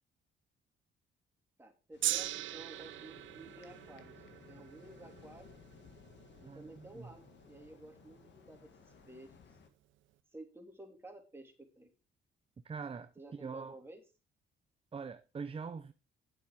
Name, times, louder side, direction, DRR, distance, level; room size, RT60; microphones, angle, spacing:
voice 1, 1.6-5.5 6.4-9.3 10.3-11.9 13.2-14.0, right 2 dB, 10° right, 3.1 m, -53 dB
sound 1, 1.9-9.7, left 7 dB, 65° left, 1.7 m, -59 dB
Gong, 2.0-8.4 9.2-9.3, right 14 dB, 75° right, 0.6 m, -41 dB
voice 2, 6.5-7.1 12.6-13.7 14.9-15.9, right 5 dB, 30° right, 0.7 m, -43 dB
10.0 x 7.6 x 5.0 m
cardioid pair, 90°, 20 cm